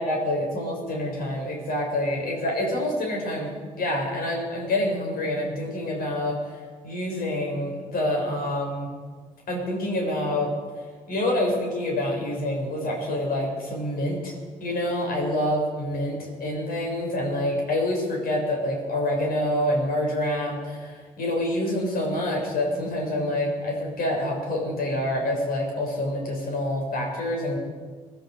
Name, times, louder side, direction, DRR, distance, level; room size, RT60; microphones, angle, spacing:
voice 1, 0.0-3.5 3.8-6.5 6.8-8.9 9.5-10.5 11.1-14.3 14.6-27.6, left 1 dB, 55° left, 0 dB, 6.3 m, -27 dB
25.5 x 11.5 x 4.9 m, 1.5 s
figure-of-eight pair, 40°, 18 cm